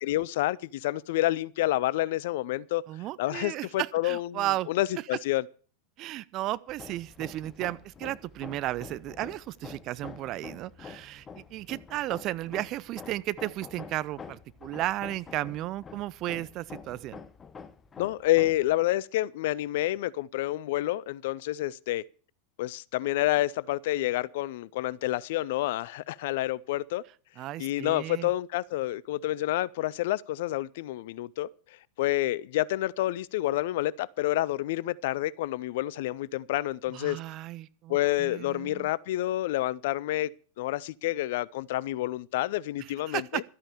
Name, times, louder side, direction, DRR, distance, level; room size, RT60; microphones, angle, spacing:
voice 1, 0.0-2.8 3.2-5.4 18.0-22.0 22.6-27.0 27.6-31.5 32.0-37.2 37.9-43.4, left 15 dB, 60° left, 0.5 m, -29 dB
voice 2, 2.9-4.7 6.0-17.2 27.4-28.3 36.9-38.9 42.8-43.4, right 15 dB, 40° right, 0.6 m, -34 dB
Hammer, 6.7-18.8, left 5 dB, 20° left, 0.9 m, -47 dB
12.5 x 8.9 x 6.7 m
figure-of-eight pair, 90°, 0 cm